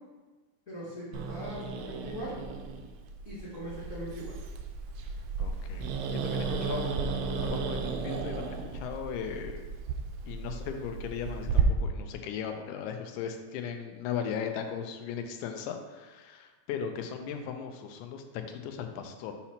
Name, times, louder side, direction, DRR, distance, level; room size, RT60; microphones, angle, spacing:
voice 1, 0.7-2.3 3.2-4.4 6.5-6.6, equal, 50° left, -8 dB, 0.8 m, -40 dB
Growling, 1.1-11.6, right 5 dB, 85° right, 1.4 m, -34 dB
voice 2, 5.4-7.0 7.4-9.7 10.3-19.3, left 7 dB, 85° left, 5 dB, 2.0 m, -37 dB
6.9 x 2.9 x 5.7 m, 1.3 s
omnidirectional pair, 3.4 m